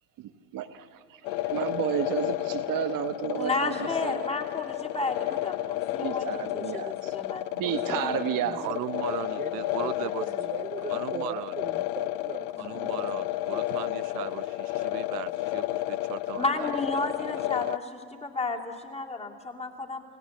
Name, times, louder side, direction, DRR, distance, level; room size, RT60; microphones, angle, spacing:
voice 1, 0.5-4.2 6.0-7.1 7.6-8.6, right 11 dB, 40° right, 9 dB, 1.2 m, -32 dB
sound 1, 1.2-17.8, left 16 dB, 65° left, 0.7 m, -32 dB
voice 2, 3.4-6.3 6.5-8.2 12.6-12.8 16.4-20.0, left 3 dB, 15° left, 1 dB, 2.7 m, -32 dB
voice 3, 8.0-8.8 9.4-12.7, right 6 dB, 15° right, 6 dB, 0.8 m, -40 dB
voice 4, 8.5-10.2 10.9-11.5 12.6-16.7 17.6-17.7, right 18 dB, 75° right, 17 dB, 0.5 m, -38 dB
29.5 x 17.0 x 7.3 m, 2.3 s
hypercardioid pair, 90°, 48 cm